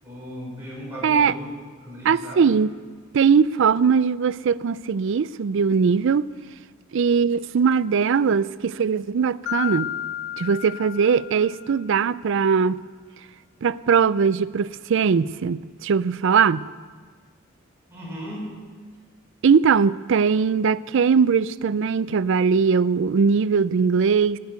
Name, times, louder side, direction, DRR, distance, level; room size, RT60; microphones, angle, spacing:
voice 1, 0.0-1.5 1.8-2.5 17.9-18.5, equal, 10° right, 5.5 m, -36 dB
voice 2, 1.0-1.4 2.0-2.7 3.1-6.2 6.9-9.9 10.4-12.8 13.6-16.7 19.4-24.4, right 6 dB, 65° right, 0.4 m, -20 dB
Mallet percussion, 9.5-12.0, left 12 dB, 55° left, 0.6 m, -32 dB
12.5 x 10.0 x 9.4 m
head